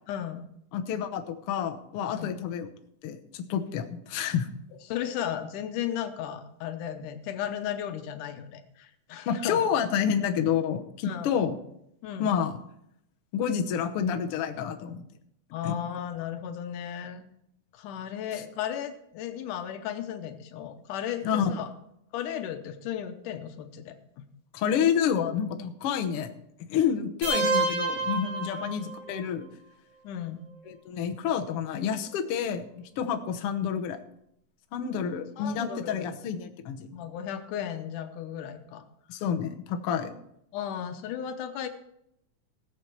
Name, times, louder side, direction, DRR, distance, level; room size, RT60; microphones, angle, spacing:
voice 1, 0.1-0.4 2.1-2.4 4.9-9.6 11.0-11.3 12.0-12.4 15.5-17.2 17.7-21.7 22.1-24.3 28.5-28.7 30.0-30.4 35.4-36.2 36.9-38.8 40.5-41.7, left 10 dB, 85° left, 8 dB, 2.4 m, -35 dB
voice 2, 0.7-2.7 3.0-4.5 9.3-11.6 12.2-12.6 13.3-15.0 15.6-15.8 21.2-21.6 24.5-26.3 26.7-29.5 30.7-32.7 33.0-34.0 34.7-36.9 39.1-40.1, left 8 dB, 65° left, 5 dB, 1.5 m, -29 dB
sound 1, 27.2-29.2, right 3 dB, 80° right, 3.7 m, -28 dB
18.0 x 7.1 x 4.6 m, 0.76 s
omnidirectional pair, 3.6 m